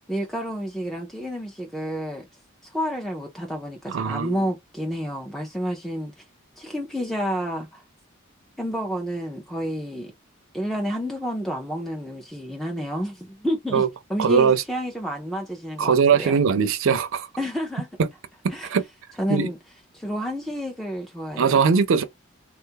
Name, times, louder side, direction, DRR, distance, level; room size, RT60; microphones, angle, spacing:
voice 1, 0.1-2.3 2.6-6.2 6.6-7.8 8.6-10.1 10.5-16.4 17.4-17.9 18.5-18.7 19.2-19.6 19.9-21.7, equal, ahead, 0.4 m, -30 dB
voice 2, 3.9-4.4 13.7-13.9 14.2-14.6 15.8-17.3 18.6-18.8 19.3-19.5 21.4-22.0, right 6 dB, 70° right, 0.5 m, -20 dB
3.6 x 2.3 x 2.7 m
head